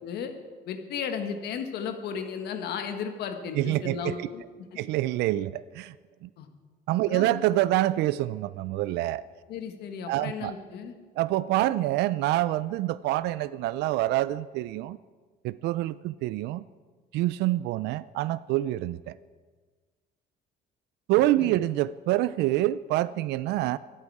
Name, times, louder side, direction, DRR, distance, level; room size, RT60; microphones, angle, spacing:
voice 1, 0.0-0.3 0.7-4.4 6.4-6.5 7.1-7.3 9.5-10.9 21.4-21.6, left 7 dB, 75° left, 6 dB, 1.6 m, -34 dB
voice 2, 3.6-4.3 4.8-5.9 6.2-6.3 6.9-9.2 10.1-10.5 11.2-15.0 15.4-16.6 17.1-19.2 21.1-23.8, right 15 dB, 80° right, 16 dB, 0.4 m, -26 dB
26.0 x 8.7 x 4.8 m, 1.4 s
cardioid pair, 110°, 17 cm